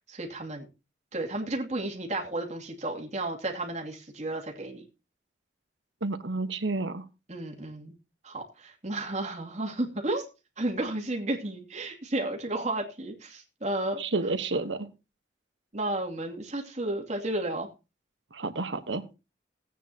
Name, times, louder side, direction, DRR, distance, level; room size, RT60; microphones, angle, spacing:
voice 1, 0.1-0.7 1.1-4.8 7.3-7.9 8.2-10.2 10.6-14.0 15.7-17.7, right 2 dB, 40° right, 1 dB, 2.7 m, -32 dB
voice 2, 6.0-7.0 14.0-14.9 18.3-19.0, right 3 dB, 85° right, 9 dB, 1.3 m, -30 dB
17.0 x 9.2 x 2.9 m, 0.28 s
head